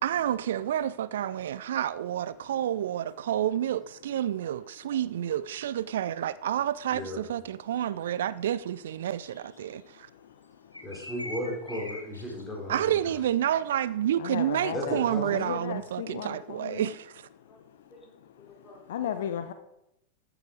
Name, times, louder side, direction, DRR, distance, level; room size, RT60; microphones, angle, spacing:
voice 1, 0.0-10.1 12.7-17.3, right 11 dB, 60° right, 0.3 m, -29 dB
voice 2, 6.9-7.3 10.8-12.9 14.7-15.4 15.7-15.8 17.5-17.6 17.9-18.1 18.6-19.2, left 1 dB, 10° left, 4.5 m, -36 dB
sound 1, 7.9-8.0 9.3-9.7 10.7-12.4, left 1 dB, 85° left, 1.6 m, -42 dB
voice 3, 14.2-16.3 16.6-16.8 18.9-19.5, left 9 dB, 60° left, 0.7 m, -34 dB
14.0 x 7.0 x 4.9 m
figure-of-eight pair, 90°, 0 cm